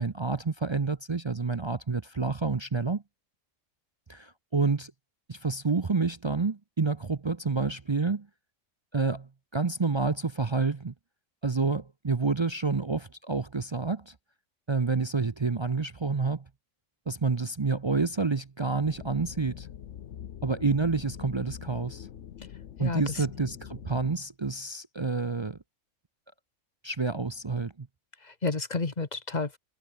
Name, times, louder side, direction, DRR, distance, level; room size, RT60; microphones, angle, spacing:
voice 1, 0.0-3.0 4.1-4.9 5.3-8.3 8.9-10.9 11.4-14.1 14.7-16.4 17.1-19.7 20.4-22.1 22.8-25.6 26.8-27.9, right 4 dB, 30° right, 0.5 m, -28 dB
sound 1, 18.8-24.2, left 10 dB, 70° left, 1.1 m, -44 dB
voice 2, 22.8-23.3 28.2-29.6, left 3 dB, 35° left, 1.8 m, -31 dB
omnidirectional pair, 1.3 m